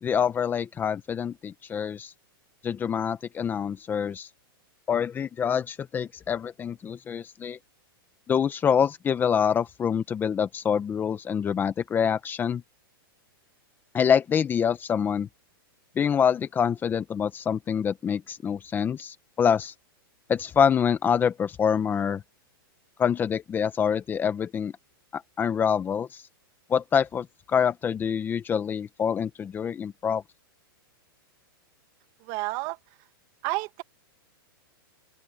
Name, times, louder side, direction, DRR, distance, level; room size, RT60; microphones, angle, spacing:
voice 1, 0.0-2.1 2.6-4.3 4.9-7.6 8.3-12.6 13.9-15.3 16.0-19.7 20.3-22.2 23.0-24.7 25.1-26.2 26.7-30.2, left 7 dB, 15° left, 1.1 m, -26 dB
voice 2, 32.3-32.8 33.4-33.8, right 23 dB, 40° right, 2.2 m, -30 dB
open air
hypercardioid pair, 150°, 12 cm